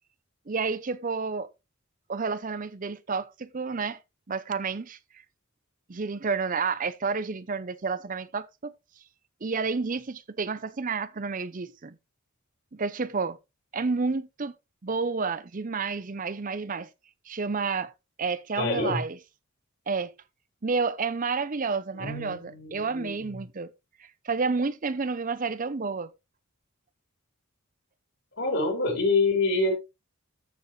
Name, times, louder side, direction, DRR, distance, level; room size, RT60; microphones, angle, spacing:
voice 1, 0.5-1.5 2.1-4.0 4.3-5.0 5.9-8.7 9.4-12.0 12.7-13.4 13.7-14.5 14.8-16.9 17.3-17.9 18.2-19.2 19.9-20.1 20.6-23.7 24.0-26.1, right 4 dB, 35° right, 0.6 m, -30 dB
voice 2, 18.6-19.0 21.9-23.4 28.4-29.7, left 3 dB, 55° left, 4.9 m, -27 dB
13.5 x 7.2 x 3.1 m
head